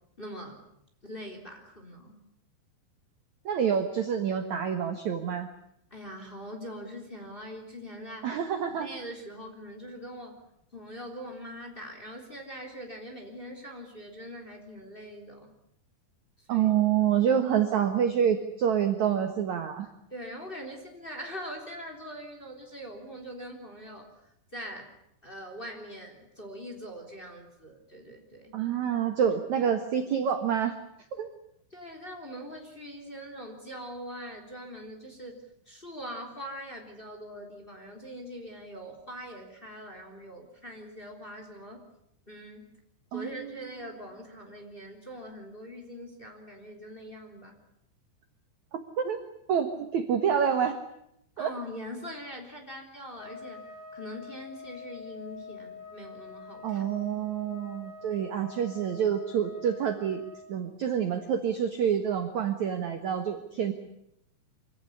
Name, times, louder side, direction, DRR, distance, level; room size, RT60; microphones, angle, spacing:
voice 1, 0.2-0.6 1.0-2.2 5.9-8.4 8.8-10.4 10.7-15.5 16.5-16.7 20.1-24.1 24.5-24.9 25.2-28.6 29.3-29.7 31.7-41.9 42.3-42.7 43.1-47.6 51.4-56.8 58.1-58.3 63.5-63.7, equal, 15° left, 3 dB, 3.1 m, -42 dB
voice 2, 3.5-5.5 8.2-8.9 16.5-19.9 28.5-30.8 31.2-31.3 43.1-43.6 49.0-49.2 49.5-50.8 51.4-51.5 56.6-60.2 60.5-63.7, right 8 dB, 60° right, 7 dB, 2.0 m, -27 dB
Trumpet, 53.1-60.5, left 5 dB, 55° left, 8.6 m, -45 dB
25.5 x 17.0 x 10.0 m, 0.77 s
omnidirectional pair, 5.2 m